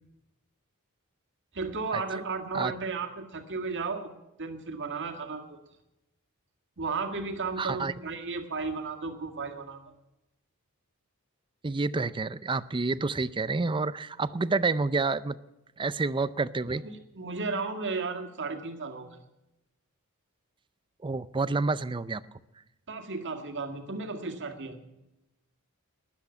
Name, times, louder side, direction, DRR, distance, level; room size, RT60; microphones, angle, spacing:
voice 1, 1.5-4.1 4.4-5.6 6.8-9.9 16.8-19.2 22.9-24.8, right 4 dB, 55° right, 5 dB, 1.9 m, -34 dB
voice 2, 7.6-7.9 11.6-15.4 15.8-16.8 21.0-22.2, right 3 dB, 20° right, 16 dB, 0.5 m, -28 dB
13.0 x 10.5 x 8.7 m, 0.93 s
head